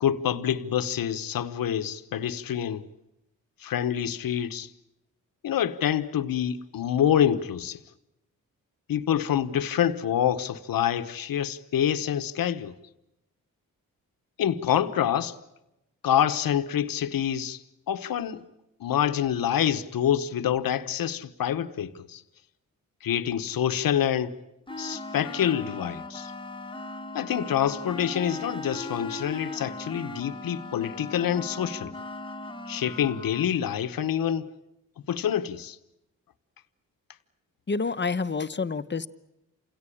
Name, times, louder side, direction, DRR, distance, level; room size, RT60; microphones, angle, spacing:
voice 1, 0.0-2.9 3.6-4.7 5.4-7.8 8.9-12.7 14.4-15.4 16.0-17.6 17.9-18.5 18.8-22.2 23.0-24.3 24.8-26.3 27.1-31.9 32.7-34.5 35.1-35.8, left 9 dB, 75° left, 1.1 m, -26 dB
sound 1, 24.7-33.5, left 2 dB, 15° left, 1.5 m, -38 dB
voice 2, 37.7-39.1, left 4 dB, 30° left, 1.0 m, -28 dB
28.0 x 17.0 x 9.9 m
cardioid pair, 65°, 35 cm